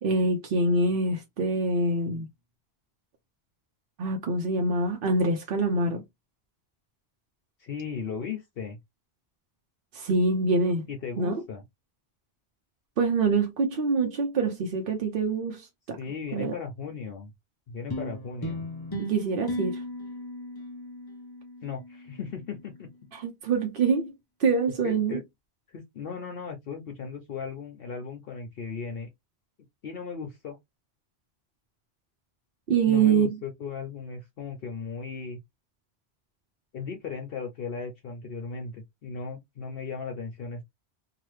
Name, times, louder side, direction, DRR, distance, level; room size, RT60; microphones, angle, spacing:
voice 1, 0.0-2.3 4.0-6.0 9.9-10.9 11.2-11.3 13.0-16.0 16.3-16.5 19.0-19.8 23.1-24.1 24.4-25.2 32.7-33.3, right 3 dB, 60° right, 0.8 m, -25 dB
voice 2, 7.6-8.8 10.9-11.6 16.0-17.3 17.7-18.6 21.6-22.9 24.8-25.2 25.7-29.1 29.8-30.6 32.8-35.4 36.7-40.6, left 5 dB, 65° left, 0.9 m, -37 dB
sound 1, 17.9-22.5, left 1 dB, 25° left, 0.6 m, -37 dB
2.9 x 2.3 x 3.1 m
omnidirectional pair, 1.1 m